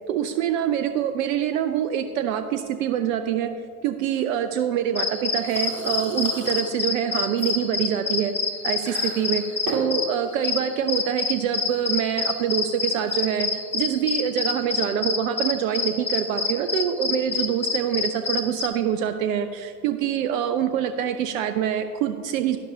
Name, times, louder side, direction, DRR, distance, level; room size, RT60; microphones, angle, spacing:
voice 1, 0.1-3.5 3.8-8.3 8.6-22.6, right 9 dB, 60° right, 9 dB, 0.6 m, -25 dB
sound 1, 4.2-15.1, right 2 dB, 40° right, 1.9 m, -40 dB
sound 2, 4.9-18.7, left 4 dB, 90° left, 0.8 m, -27 dB
11.0 x 11.0 x 2.8 m, 2.2 s
figure-of-eight pair, 75°, 47 cm